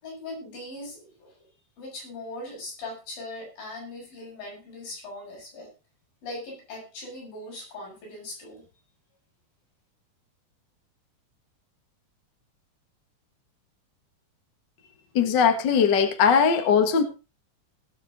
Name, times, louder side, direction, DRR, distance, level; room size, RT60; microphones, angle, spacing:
voice 1, 0.0-1.5 1.8-5.7 6.2-8.7, left 2 dB, 80° left, -2 dB, 9.0 m, -40 dB
voice 2, 15.1-17.0, left 6 dB, 40° left, 6 dB, 1.7 m, -20 dB
19.5 x 7.4 x 4.1 m, 0.32 s
omnidirectional pair, 4.0 m